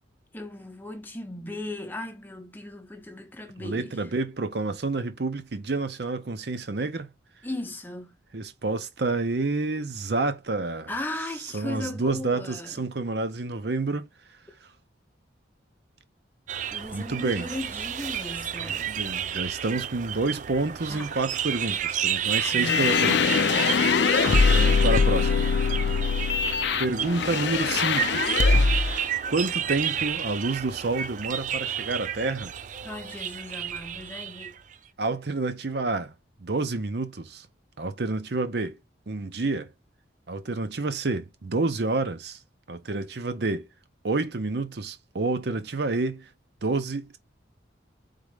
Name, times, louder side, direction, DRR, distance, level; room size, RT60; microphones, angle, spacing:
voice 1, 0.3-4.0 7.4-8.2 10.9-12.8 16.7-19.0 20.9-21.2 22.3-22.6 23.9-24.4 32.8-34.6, left 2 dB, 10° left, 0.8 m, -37 dB
voice 2, 3.6-7.1 8.3-10.9 11.5-14.1 16.9-17.5 18.9-23.3 24.5-25.5 26.8-28.2 29.3-32.5 35.0-36.1 36.4-37.5 37.8-38.8 39.1-39.7 40.3-42.4 42.7-43.7 44.0-46.3 46.6-47.2, right 3 dB, 60° right, 0.7 m, -29 dB
sound 1, 16.5-34.7, right 9 dB, 40° right, 0.3 m, -31 dB
sound 2, 22.5-29.0, left 5 dB, 65° left, 0.5 m, -22 dB
4.2 x 3.7 x 3.3 m
head